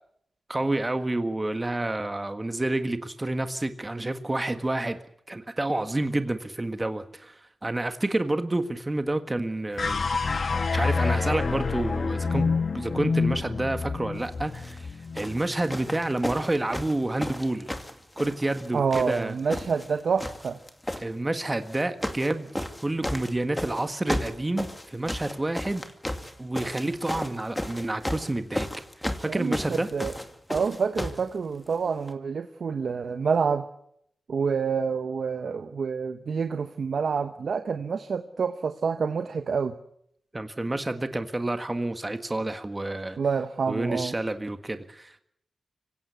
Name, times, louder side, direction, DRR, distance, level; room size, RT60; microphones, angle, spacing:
voice 1, 0.5-5.0 5.3-10.0 10.7-12.5 12.7-17.7 18.2-19.3 21.0-22.5 22.8-25.8 26.4-28.7 29.0-29.9 40.3-43.2 43.7-45.2, right 2 dB, 25° right, 9 dB, 1.6 m, -29 dB
sound 1, 9.8-16.2, left 4 dB, 60° left, 1.6 m, -28 dB
sound 2, 14.5-14.8 15.2-18.7 18.9-19.9 20.2-21.0 21.7-22.3 22.5-31.2 32.1-32.2, left 1 dB, 10° left, 2.4 m, -33 dB
voice 2, 18.7-20.6 29.2-30.1 30.5-33.7 34.3-39.8 43.2-44.1, right 5 dB, 75° right, 9 dB, 1.0 m, -28 dB
24.5 x 17.0 x 8.3 m, 0.73 s
cardioid pair, 60°, 0 cm